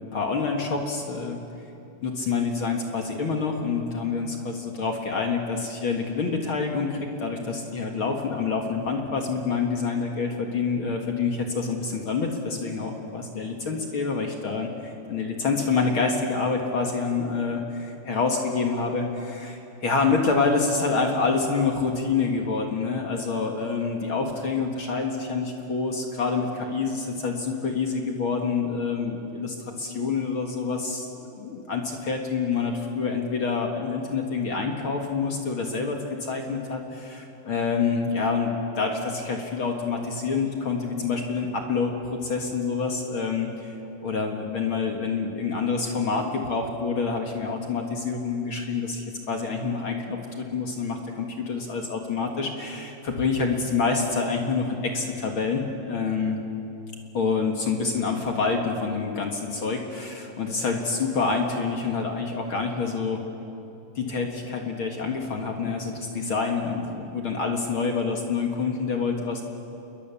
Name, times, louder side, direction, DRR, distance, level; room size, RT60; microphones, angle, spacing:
voice 1, 0.0-1.4 2.0-43.7 44.0-56.4 57.1-63.2 64.0-69.4, left 4 dB, 45° left, 2 dB, 1.9 m, -27 dB
28.0 x 21.5 x 7.1 m, 2.8 s
omnidirectional pair, 4.4 m